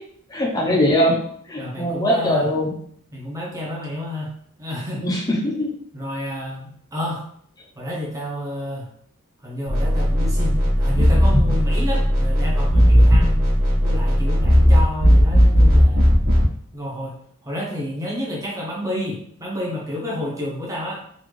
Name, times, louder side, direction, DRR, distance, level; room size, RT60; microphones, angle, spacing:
voice 1, 0.3-1.1 1.5-2.7 5.0-5.7, equal, 15° left, -2 dB, 0.9 m, -21 dB
voice 2, 1.6-2.5 3.1-4.3 4.6-5.0 5.9-7.2 7.7-8.9 9.4-13.4 13.8-16.1 16.7-21.0, left 1 dB, 15° right, -4 dB, 1.2 m, -30 dB
sound 1, 9.7-16.5, equal, 45° right, 1.6 m, -16 dB
4.1 x 2.9 x 3.2 m, 0.63 s
head